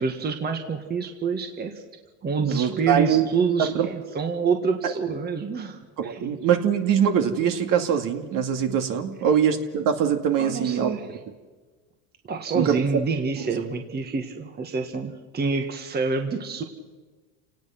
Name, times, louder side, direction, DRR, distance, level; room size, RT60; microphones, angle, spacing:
voice 1, 0.0-1.8 2.2-6.2 10.4-11.1 12.3-16.6, right 5 dB, 25° right, 5 dB, 1.8 m, -27 dB
voice 2, 2.4-3.3 3.6-3.9 4.8-4.9 6.0-11.0 12.5-12.8 13.4-13.5, right 8 dB, 50° right, 5 dB, 2.4 m, -23 dB
30.0 x 18.5 x 5.9 m, 1.3 s
supercardioid pair, 120°, 42 cm